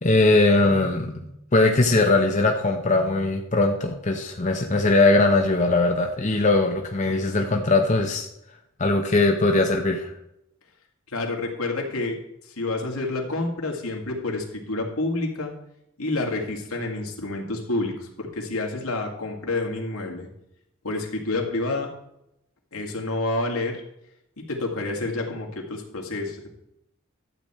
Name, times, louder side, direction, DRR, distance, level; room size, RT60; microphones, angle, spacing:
voice 1, 0.0-8.3 8.8-10.1, left 2 dB, 35° left, 2 dB, 0.9 m, -20 dB
voice 2, 11.1-12.2 12.4-15.5 16.0-20.3 20.8-21.9 22.7-23.8 24.5-26.5, left 2 dB, 80° left, 1 dB, 2.3 m, -28 dB
12.0 x 8.3 x 4.4 m, 0.81 s
head